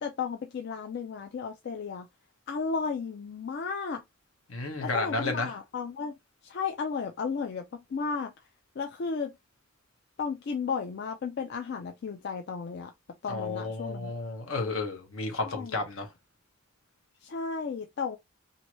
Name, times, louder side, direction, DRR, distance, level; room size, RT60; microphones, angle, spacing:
voice 1, 0.0-2.1 2.5-4.0 4.8-6.1 6.4-8.3 8.8-9.3 10.2-12.9 13.2-14.2 15.4-15.8 17.2-18.2, left 5 dB, 55° left, 0.4 m, -34 dB
voice 2, 4.5-5.5 13.3-16.1, left 3 dB, 75° left, 1.0 m, -32 dB
2.8 x 2.6 x 2.9 m
head